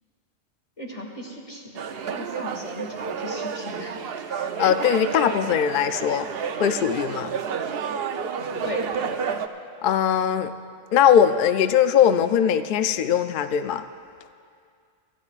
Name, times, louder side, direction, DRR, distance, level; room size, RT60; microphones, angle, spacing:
voice 1, 0.8-1.8 2.1-3.9 8.5-8.9, left 1 dB, 25° left, -2 dB, 2.0 m, -36 dB
sound 1, 1.7-9.5, right 6 dB, 60° right, 0.8 m, -30 dB
voice 2, 4.4-6.3 6.6-7.3 9.8-10.5 10.9-13.8, left 8 dB, 60° left, 10 dB, 0.5 m, -20 dB
26.0 x 13.5 x 2.4 m, 2.2 s
omnidirectional pair, 1.3 m